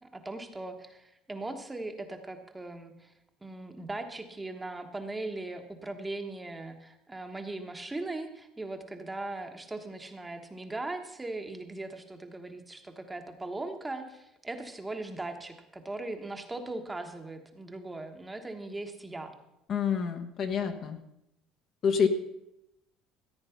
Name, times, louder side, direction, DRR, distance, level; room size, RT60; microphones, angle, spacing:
voice 1, 0.0-3.1 3.4-19.3, right 2 dB, 10° right, 5 dB, 1.2 m, -39 dB
voice 2, 19.7-21.0 21.8-22.1, left 7 dB, 40° left, 6 dB, 1.1 m, -27 dB
14.5 x 8.8 x 5.8 m, 0.86 s
cardioid pair, 140°, 0 cm